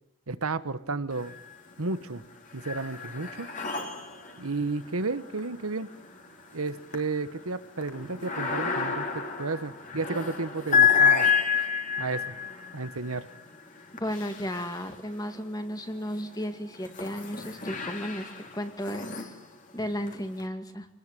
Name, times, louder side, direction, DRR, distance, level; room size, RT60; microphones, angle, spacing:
voice 1, 0.3-1.3 1.8-2.2 2.5-3.5 4.4-5.9 6.5-11.3 12.0-12.3 12.7-13.3, right 3 dB, 85° right, 12 dB, 1.3 m, -32 dB
sound 1, 1.1-1.8 2.1-15.3 15.9-20.4, left 7 dB, 35° left, 3.4 m, -30 dB
voice 2, 14.0-19.1 19.7-20.9, equal, 15° left, 7 dB, 2.2 m, -34 dB
27.0 x 20.0 x 9.3 m, 0.79 s
head